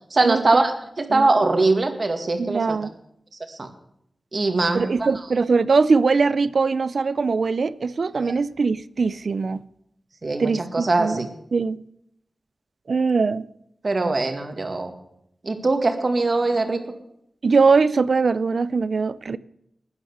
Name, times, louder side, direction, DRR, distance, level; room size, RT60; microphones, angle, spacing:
voice 1, 0.1-2.8 3.5-3.7 4.3-5.1 8.2-8.3 10.2-11.3 13.8-14.9 15.4-16.8, right 3 dB, 50° right, 2.0 m, -22 dB
voice 2, 2.4-2.9 4.7-9.6 10.4-11.3 11.5-11.8 12.9-13.5 17.4-19.4, right 4 dB, 70° right, 0.5 m, -21 dB
12.5 x 9.7 x 8.1 m
wide cardioid pair, 65°, 0 cm